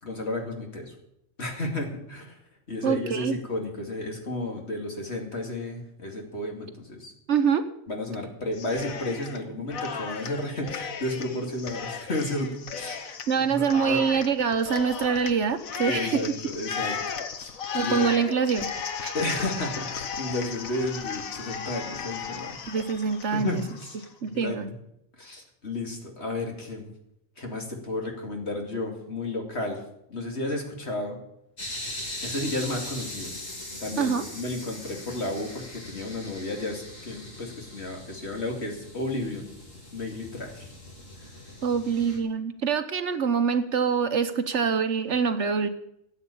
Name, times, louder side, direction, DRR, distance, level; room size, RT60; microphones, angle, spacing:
voice 1, 0.0-0.9 1.4-2.4 2.7-7.1 7.9-13.2 13.5-14.1 15.8-17.0 17.4-17.5 17.8-18.1 19.1-22.6 23.3-24.7 25.2-26.9 27.4-29.8 30.1-31.2 32.2-33.3 33.8-39.5 39.9-40.7, left 2 dB, 50° left, 1 dB, 2.9 m, -32 dB
voice 2, 2.8-3.3 7.3-7.7 13.3-16.2 17.7-18.7 19.0-19.1 22.7-23.6 24.2-24.7 34.0-34.2 41.6-45.7, right 6 dB, 60° right, 10 dB, 1.2 m, -25 dB
Cheering, 8.5-9.4 9.7-24.1, left 6 dB, 90° left, 1.5 m, -35 dB
sound 1, 31.6-42.2, left 1 dB, 70° left, 3.7 m, -40 dB
13.5 x 8.3 x 8.5 m, 0.78 s
omnidirectional pair, 1.4 m